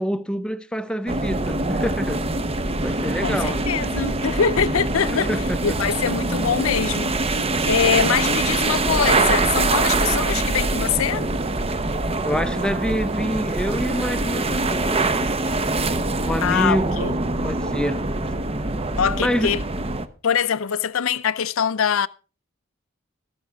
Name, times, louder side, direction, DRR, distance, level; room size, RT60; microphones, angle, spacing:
voice 1, 0.0-2.2 2.8-3.6 5.3-5.8 12.2-15.1 16.2-17.0 17.4-18.0 19.2-19.5, equal, 5° left, 0.7 m, -26 dB
sound 1, 1.1-20.1, right 2 dB, 30° right, 0.8 m, -24 dB
voice 2, 3.2-5.3 5.6-11.3 16.4-17.2 19.0-19.6 20.2-22.1, left 7 dB, 85° left, 0.5 m, -23 dB
14.0 x 12.5 x 3.6 m
head